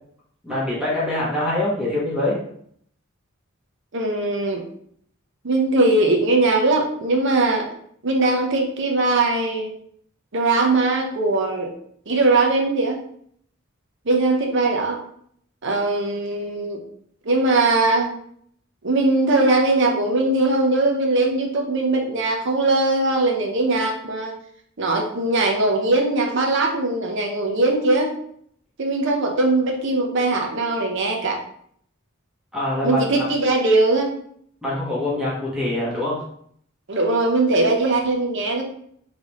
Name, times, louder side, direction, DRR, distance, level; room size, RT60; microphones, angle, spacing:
voice 1, 0.4-2.4 32.5-33.0 34.6-36.2, left 1 dB, 5° right, -7 dB, 1.4 m, -24 dB
voice 2, 3.9-4.6 5.4-7.7 8.0-9.7 10.3-11.7 12.1-13.0 14.1-15.0 15.6-16.8 17.2-18.1 18.8-24.3 24.8-28.2 28.8-31.4 32.8-34.1 36.9-38.6, right 2 dB, 60° right, 1 dB, 0.8 m, -20 dB
3.9 x 3.4 x 3.0 m, 0.65 s
head